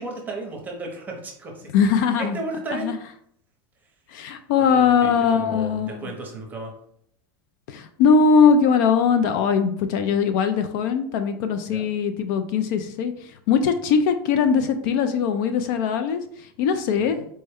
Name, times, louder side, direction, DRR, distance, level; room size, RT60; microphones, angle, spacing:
voice 1, 0.0-1.7 2.2-2.9 4.7-6.7 11.7-11.9 17.0-17.3, right 2 dB, 15° right, 0 dB, 0.7 m, -34 dB
voice 2, 1.7-2.4 2.8-2.9 4.1-6.1 7.7-17.2, left 6 dB, 55° left, 8 dB, 0.4 m, -21 dB
4.2 x 2.1 x 3.5 m, 0.66 s
supercardioid pair, 160°, 13 cm